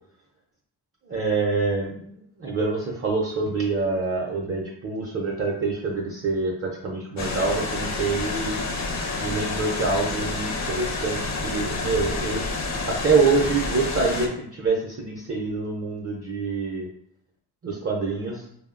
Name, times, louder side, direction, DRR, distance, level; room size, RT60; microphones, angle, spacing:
voice 1, 1.1-8.6 9.2-12.4 12.8-16.9 17.6-18.4, right 4 dB, 35° right, -2 dB, 0.5 m, -26 dB
sound 1, 7.2-14.3, left 3 dB, 45° left, 0.5 m, -29 dB
3.1 x 2.0 x 2.4 m, 0.70 s
cardioid pair, 100°, 40 cm